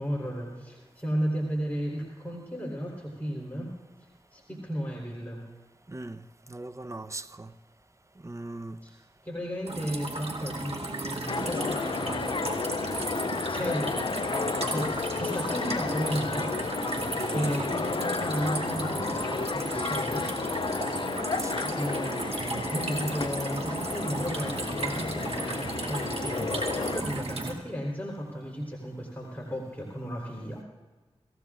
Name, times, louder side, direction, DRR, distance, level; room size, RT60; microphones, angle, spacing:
voice 1, 0.0-3.7 4.3-5.4 8.8-8.9 9.2-12.3 13.5-14.0 14.4-16.5 17.3-20.3 21.7-30.6, equal, 15° left, 3.7 m, -34 dB
voice 2, 5.9-7.5 8.2-8.8 17.0-17.6 21.4-21.8, right 2 dB, 25° right, 0.8 m, -40 dB
sound 1, 9.7-27.5, right 2 dB, 70° right, 2.2 m, -34 dB
sound 2, 11.3-27.0, left 5 dB, 45° left, 0.4 m, -32 dB
26.0 x 15.5 x 2.5 m
cardioid pair, 50°, 11 cm